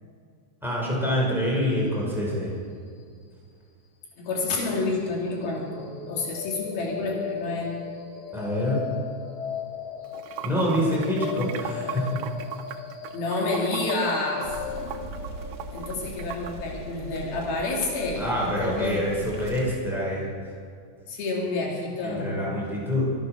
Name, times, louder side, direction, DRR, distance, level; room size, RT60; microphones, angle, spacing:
voice 1, 0.6-2.5 8.3-8.9 10.4-12.3 18.2-20.3 22.0-23.1, left 1 dB, ahead, -4 dB, 5.2 m, -26 dB
voice 2, 4.2-7.7 13.1-14.5 15.7-19.0 21.1-22.4, left 3 dB, 90° left, -2 dB, 4.6 m, -29 dB
sound 1, 5.6-19.6, left 7 dB, 70° left, 3.9 m, -38 dB
Water / Sink (filling or washing), 10.1-16.5, right 10 dB, 80° right, 2.2 m, -37 dB
sound 2, 14.4-19.8, right 2 dB, 45° right, 2.8 m, -40 dB
23.5 x 9.4 x 6.3 m, 2.3 s
omnidirectional pair, 4.2 m